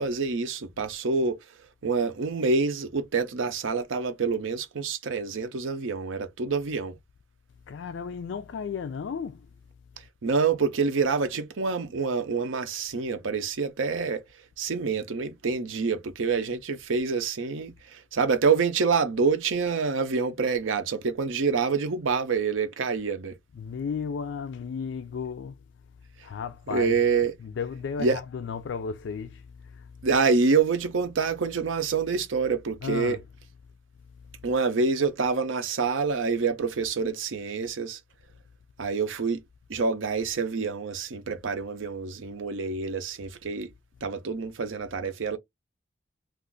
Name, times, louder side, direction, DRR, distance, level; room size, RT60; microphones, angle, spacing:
voice 1, 0.0-1.4 1.8-7.0 10.2-14.2 14.6-23.4 26.7-27.3 28.0-28.2 30.0-33.2 34.4-38.0 38.8-39.4 39.7-43.7 44.0-45.4, right 4 dB, 85° right, 0.6 m, -27 dB
voice 2, 7.7-9.4 23.5-25.5 26.2-27.0 27.4-29.4 29.7-29.9 32.8-33.2, left 6 dB, 70° left, 0.3 m, -34 dB
2.4 x 2.4 x 3.7 m
head